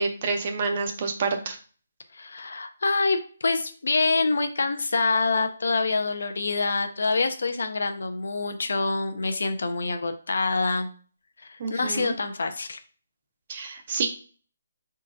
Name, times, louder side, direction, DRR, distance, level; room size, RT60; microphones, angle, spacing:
voice 1, 0.0-1.6 11.6-12.1 13.5-14.1, right 4 dB, 30° right, 5 dB, 0.5 m, -28 dB
voice 2, 2.1-10.9 11.4-12.8, left 3 dB, 70° left, 8 dB, 0.6 m, -26 dB
5.4 x 3.7 x 2.6 m, 0.40 s
hypercardioid pair, 180°, 0 cm